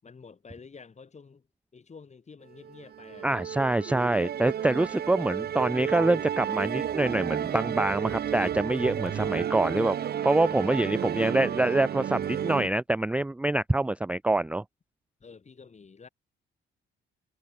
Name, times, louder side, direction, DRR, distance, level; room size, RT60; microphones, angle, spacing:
voice 1, 0.0-1.5 1.7-3.5 11.1-11.3 15.2-16.1, left 5 dB, 35° left, 8.0 m, -49 dB
Musical instrument, 2.6-12.7, right 9 dB, 55° right, 0.9 m, -32 dB
voice 2, 3.2-10.0 10.2-14.6, right 2 dB, 5° right, 0.4 m, -25 dB
cardioid pair, 90°, 20 cm